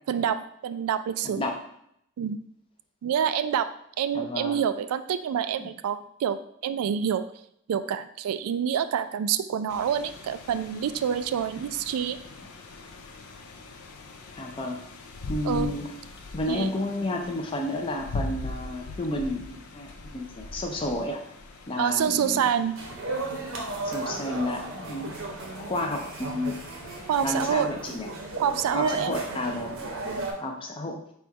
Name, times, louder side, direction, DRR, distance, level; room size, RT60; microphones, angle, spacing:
voice 1, 0.1-1.4 2.2-2.4 3.0-7.3 7.7-12.2 15.4-15.7 16.5-16.7 21.8-22.8 27.1-27.7 28.4-29.2 30.1-30.3, right 8 dB, 90° right, 15 dB, 0.3 m, -27 dB
voice 2, 1.2-1.5 4.1-4.6 5.6-5.7 14.4-14.8 15.3-15.9 16.3-21.2 21.7-22.4 23.8-25.1 25.5-26.6 27.2-28.1 28.7-29.8 30.4-31.0, left 1 dB, 25° left, 2 dB, 0.4 m, -31 dB
sound 1, 9.7-27.3, left 2 dB, 85° left, 0.5 m, -42 dB
sound 2, 22.8-30.3, right 2 dB, 70° right, 0.8 m, -35 dB
4.2 x 2.3 x 4.6 m, 0.73 s
head